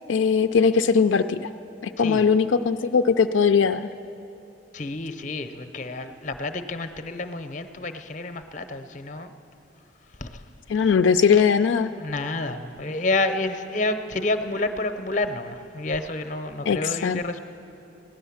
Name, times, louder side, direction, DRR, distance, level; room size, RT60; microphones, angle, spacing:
voice 1, 0.1-1.5 1.8-3.9 10.7-11.9 16.7-17.2, left 6 dB, 80° left, 8 dB, 0.3 m, -20 dB
voice 2, 4.7-9.3 10.2-10.4 11.3-11.4 12.0-17.4, left 2 dB, 40° left, 9 dB, 0.6 m, -29 dB
16.5 x 11.0 x 7.2 m, 2.9 s
head